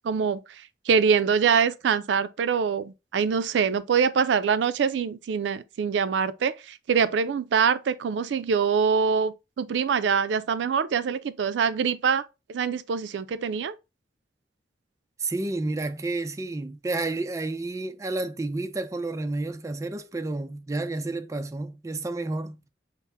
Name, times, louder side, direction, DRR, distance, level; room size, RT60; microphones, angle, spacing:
voice 1, 0.0-12.2 12.5-13.7, right 6 dB, 90° right, 0.4 m, -24 dB
voice 2, 15.2-22.6, right 2 dB, 20° right, 0.3 m, -30 dB
5.6 x 2.0 x 3.4 m
head